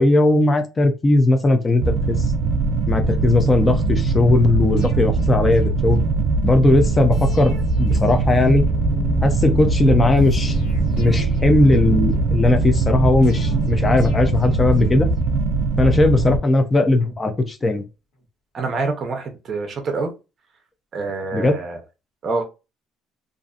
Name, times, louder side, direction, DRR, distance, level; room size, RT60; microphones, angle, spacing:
voice 1, 0.0-2.2 2.9-6.0 6.4-8.6 9.2-10.6 11.0-15.1 15.8-17.8 21.3-21.6, left 2 dB, 15° left, 0.4 m, -18 dB
sound 1, 1.8-16.4, right 3 dB, 85° right, 0.4 m, -21 dB
sound 2, 4.8-6.3 7.1-9.2 10.2-12.4 13.2-15.6 16.2-17.9 18.2-18.3, left 2 dB, 85° left, 1.3 m, -43 dB
sound 3, 8.2-14.2, left 2 dB, 45° left, 1.0 m, -31 dB
voice 2, 18.5-20.1 20.9-21.8 22.2-22.4, right 3 dB, 30° right, 0.6 m, -26 dB
2.5 x 2.5 x 2.3 m
cardioid pair, 175°, 0 cm